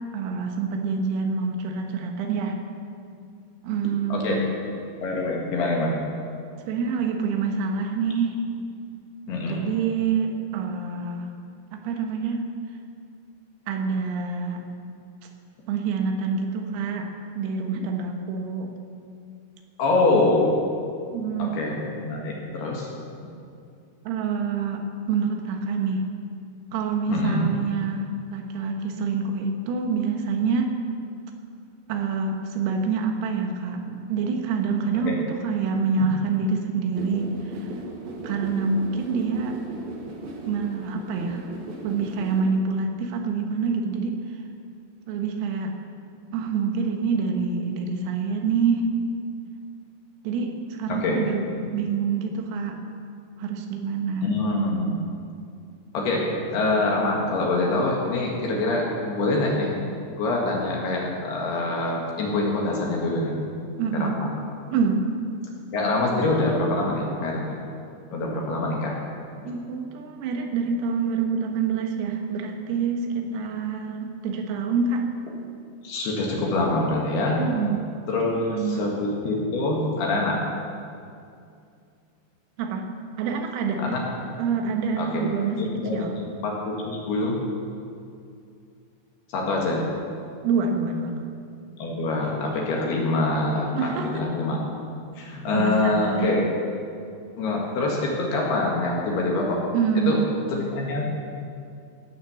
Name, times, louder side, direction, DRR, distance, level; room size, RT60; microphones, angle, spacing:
voice 1, 0.1-2.6 3.6-4.4 6.7-8.4 9.5-11.3 11.7-12.5 13.7-14.6 15.7-17.1 17.4-18.7 21.1-21.5 24.1-26.1 26.7-30.7 31.9-37.3 38.2-39.6 40.5-41.5 41.8-44.2 45.1-45.8 46.3-48.9 50.3-51.5 51.7-52.8 53.4-54.3 63.8-64.2 64.7-65.1 69.5-75.1 77.4-77.9 78.3-78.9 82.6-82.9 83.2-83.9 84.4-86.2 90.4-91.2 93.8-94.1 95.5-96.3 99.7-100.4, right 5 dB, 85° right, 3 dB, 4.0 m, -26 dB
voice 2, 4.1-4.5 5.0-6.0 9.3-9.6 19.8-20.6 21.4-22.9 27.1-27.5 35.0-35.2 35.9-36.1 50.9-51.2 54.2-55.0 55.9-59.7 60.2-63.3 63.9-64.3 65.7-67.6 68.1-68.9 69.4-69.5 75.8-77.4 78.1-80.5 83.8-84.3 85.0-85.2 85.6-87.4 89.3-89.9 91.8-94.8 95.2-96.5 97.4-99.6 100.0-100.2 100.5-101.0, left 2 dB, 60° left, -2 dB, 3.2 m, -25 dB
sound 1, 36.9-42.4, right 2 dB, 60° right, 2.7 m, -37 dB
17.0 x 9.4 x 7.1 m, 2.4 s
omnidirectional pair, 5.9 m